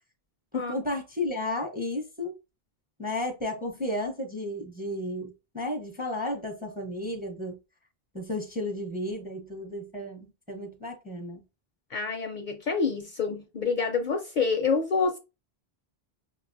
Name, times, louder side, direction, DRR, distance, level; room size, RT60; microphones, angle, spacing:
voice 1, 0.5-2.3 3.0-7.6 8.1-11.4, left 1 dB, 10° right, 0.6 m, -33 dB
voice 2, 11.9-15.2, left 5 dB, 60° left, 0.6 m, -27 dB
5.5 x 2.2 x 2.5 m
omnidirectional pair, 1.0 m